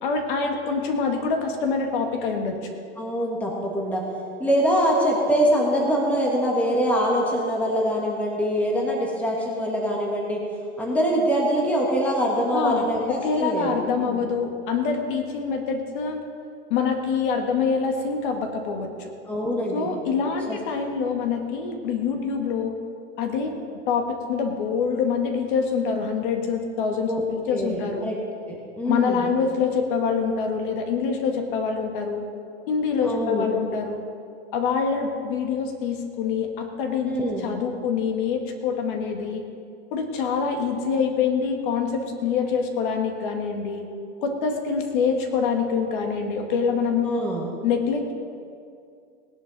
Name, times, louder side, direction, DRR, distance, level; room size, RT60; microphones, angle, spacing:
voice 1, 0.0-2.7 12.5-16.2 16.7-19.1 19.7-22.8 23.2-23.5 23.9-28.1 28.8-32.3 32.7-34.0 34.5-39.4 39.9-43.8 44.2-47.1 47.6-48.1, left 5 dB, 45° left, 4 dB, 1.7 m, -25 dB
voice 2, 3.0-4.0 4.4-10.4 10.8-13.7 14.0-14.2 19.3-19.9 20.5-20.6 27.1-27.2 27.5-28.1 28.5-29.3 33.0-33.5 37.1-37.4 47.0-47.5, equal, 5° left, -2 dB, 1.5 m, -24 dB
19.5 x 11.5 x 4.1 m, 2.3 s
supercardioid pair, 155°, 35 cm